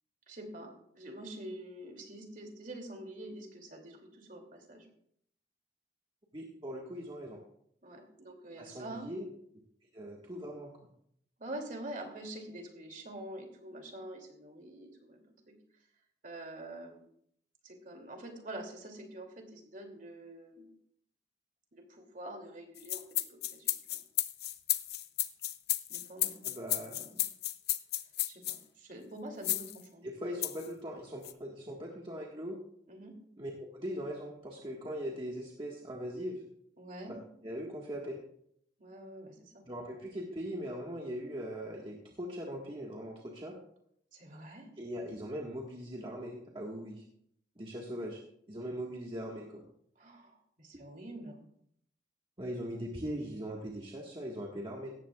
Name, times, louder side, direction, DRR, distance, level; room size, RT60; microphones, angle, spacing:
voice 1, 0.3-4.9 7.8-9.1 11.4-15.2 15.5-15.6 16.2-17.0 17.6-20.7 21.7-23.0 23.3-24.0 25.9-26.3 26.7-27.1 28.3-30.1 32.9-33.1 36.8-37.2 38.8-39.6 44.1-44.7 50.0-51.4, right 1 dB, 45° right, 2 dB, 2.7 m, -46 dB
voice 2, 6.3-7.4 8.6-9.2 9.9-10.7 26.4-26.9 30.0-32.6 33.4-36.4 37.0-37.2 37.4-38.2 39.6-43.5 44.8-47.0 47.6-48.2 48.5-49.6 52.4-54.9, equal, 30° right, -2 dB, 1.6 m, -40 dB
sound 1, 22.8-28.6 29.4-29.8 30.4-30.7 31.2-31.3, left 14 dB, 60° left, 0.7 m, -33 dB
17.0 x 14.5 x 2.4 m, 0.70 s
head